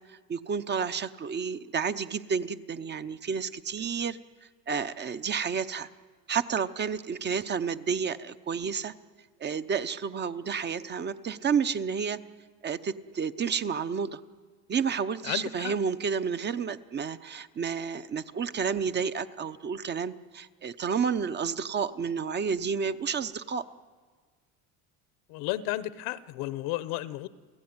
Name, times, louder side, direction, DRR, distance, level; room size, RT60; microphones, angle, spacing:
voice 1, 0.1-4.2 4.7-5.9 6.3-8.9 9.4-12.2 12.6-14.2 14.7-23.6, right 6 dB, 30° right, 12 dB, 0.8 m, -30 dB
voice 2, 15.3-15.7 25.3-27.3, left 15 dB, 80° left, 16 dB, 1.1 m, -33 dB
29.5 x 16.0 x 9.7 m, 1.5 s
cardioid pair, 130°, 37 cm